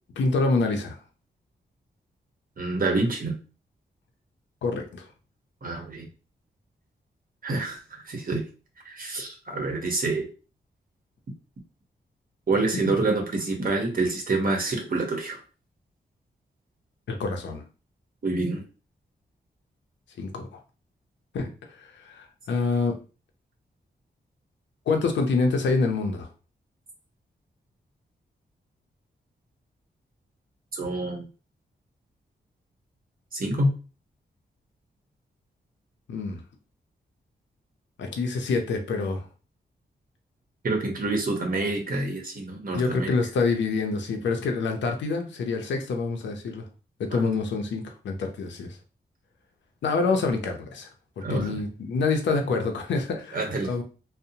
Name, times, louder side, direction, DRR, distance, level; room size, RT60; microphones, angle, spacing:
voice 1, 0.2-1.0 4.6-5.1 17.1-17.6 20.2-20.6 21.3-22.9 24.9-26.3 36.1-36.4 38.0-39.3 42.7-46.7 47.0-48.8 49.8-50.9 51.2-53.8, left 4 dB, 85° left, 4 dB, 0.5 m, -26 dB
voice 2, 2.6-3.4 5.6-6.1 7.4-8.4 8.8-10.3 12.5-15.4 18.2-18.6 30.7-31.2 33.3-33.7 40.6-43.1 47.1-47.3 51.2-51.6 53.3-53.7, right 2 dB, 50° right, 2 dB, 0.8 m, -27 dB
2.6 x 2.0 x 2.7 m, 0.34 s
cardioid pair, 60°, 18 cm